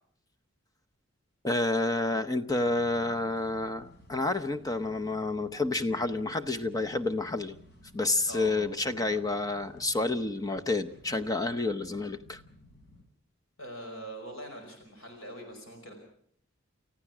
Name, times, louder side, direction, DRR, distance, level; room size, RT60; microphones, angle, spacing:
voice 1, 1.4-7.5 7.9-12.4, left 2 dB, 20° left, 8 dB, 0.8 m, -29 dB
sound 1, 2.5-13.1, left 2 dB, 55° left, 3.6 m, -55 dB
voice 2, 8.3-8.7 9.1-9.2 13.6-15.9, right 1 dB, 75° left, 4 dB, 5.4 m, -43 dB
29.5 x 14.5 x 6.1 m, 0.63 s
head